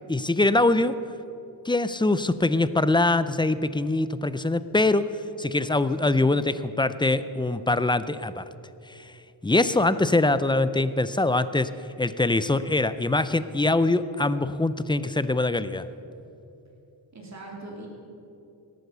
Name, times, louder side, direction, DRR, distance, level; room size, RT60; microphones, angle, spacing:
voice 1, 0.1-1.0 1.6-5.1 5.4-8.5 8.9-9.1 9.4-11.7 12.0-15.9, left 2 dB, 10° left, 14 dB, 0.4 m, -23 dB
voice 2, 6.0-6.7 17.1-17.9, right 2 dB, 35° right, -2 dB, 3.1 m, -42 dB
17.5 x 9.3 x 6.7 m, 2.8 s
wide cardioid pair, 100°, 45 cm